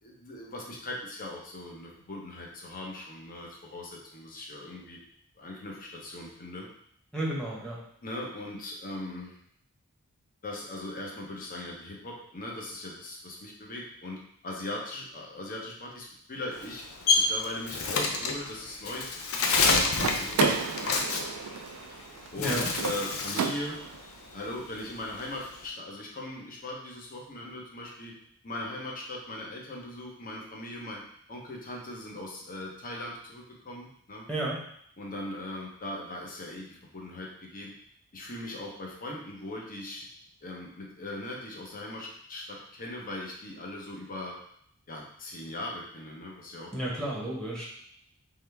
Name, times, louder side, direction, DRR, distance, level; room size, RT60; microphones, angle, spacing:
voice 1, 0.0-5.0 5.4-6.7 8.0-9.4 10.4-16.8 17.2-21.0 22.3-23.8 24.3-28.1 28.4-31.0 31.3-34.3 35.0-37.7 38.1-40.1 40.4-44.4 44.9-47.0, left 1 dB, 40° left, -1 dB, 0.8 m, -39 dB
voice 2, 7.1-7.8 22.4-22.7 34.3-34.6 46.7-47.6, right 1 dB, 5° left, -5 dB, 1.0 m, -31 dB
Bird, 16.5-22.0 22.3-23.6 23.9-25.7, left 3 dB, 75° left, 0.6 m, -28 dB
sound 1, 20.0-24.1, right 6 dB, 75° right, 0.4 m, -33 dB
3.8 x 3.3 x 3.4 m, 0.68 s
head